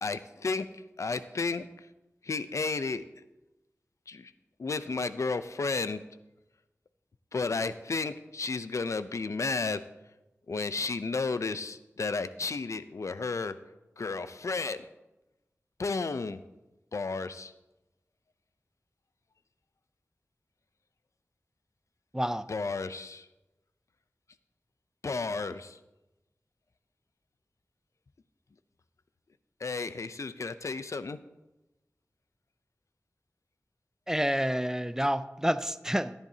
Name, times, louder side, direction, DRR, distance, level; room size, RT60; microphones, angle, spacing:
voice 1, 0.0-0.7 1.0-1.7 2.2-3.0 4.1-4.3 4.6-6.0 7.3-9.8 10.5-13.5 14.0-14.8 15.8-16.4 16.9-17.5 22.5-23.3 25.0-25.8 29.6-31.2, left 4 dB, 75° left, 13 dB, 0.5 m, -32 dB
voice 2, 34.1-36.1, equal, 10° right, 13 dB, 0.4 m, -28 dB
14.5 x 10.0 x 2.8 m, 1.0 s
wide cardioid pair, 55°, 5 cm